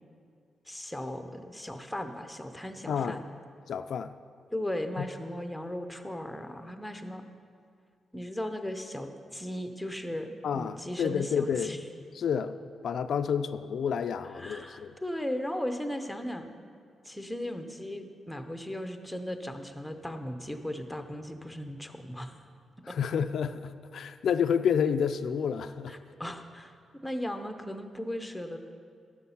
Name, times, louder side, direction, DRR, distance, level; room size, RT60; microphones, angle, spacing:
voice 1, 0.7-3.2 4.5-7.2 8.1-11.8 14.3-16.5 17.0-22.3 22.9-23.0 25.9-26.7 27.0-28.6, left 1 dB, 5° left, 7 dB, 0.6 m, -37 dB
voice 2, 2.9-3.2 3.7-4.1 5.0-5.1 10.4-11.7 12.1-12.5 12.8-15.0 22.8-26.0, left 7 dB, 65° left, 9 dB, 0.3 m, -29 dB
14.0 x 6.3 x 5.6 m, 2.3 s
wide cardioid pair, 150°, 0 cm